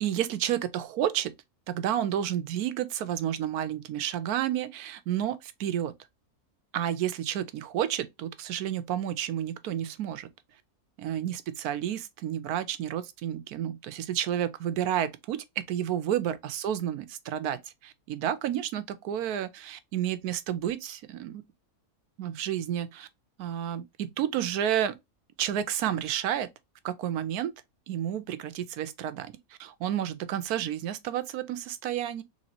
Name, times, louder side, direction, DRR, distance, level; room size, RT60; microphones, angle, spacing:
voice 1, 0.0-1.3 1.7-5.9 6.7-10.3 11.0-21.4 22.2-23.1 23.4-24.9 25.4-26.5 26.8-27.5 27.9-29.3 29.6-32.2, right 10 dB, 90° right, 1.1 m, -31 dB
4.1 x 3.2 x 2.8 m
omnidirectional pair, 1.5 m